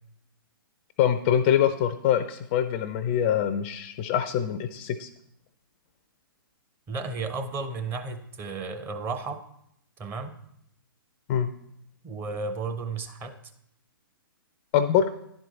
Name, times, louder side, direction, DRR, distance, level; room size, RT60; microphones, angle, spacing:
voice 1, 1.0-5.1 11.3-11.5 14.7-15.1, left 9 dB, 25° left, 10 dB, 0.4 m, -24 dB
voice 2, 6.9-9.4 10.0-10.4 12.0-13.4, right 4 dB, 15° right, 7 dB, 0.7 m, -33 dB
10.5 x 4.6 x 4.0 m, 0.74 s
figure-of-eight pair, 120°, 12 cm